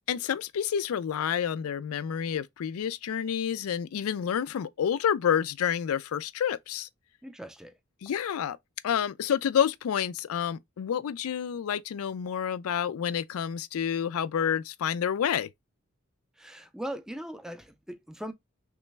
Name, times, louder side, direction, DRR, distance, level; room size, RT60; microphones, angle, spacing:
voice 1, 0.1-6.9 8.0-8.6 8.8-15.5, left 8 dB, 80° left, 0.4 m, -29 dB
voice 2, 7.2-7.7 16.4-18.3, right 1 dB, 5° right, 0.4 m, -39 dB
3.2 x 3.1 x 3.2 m
head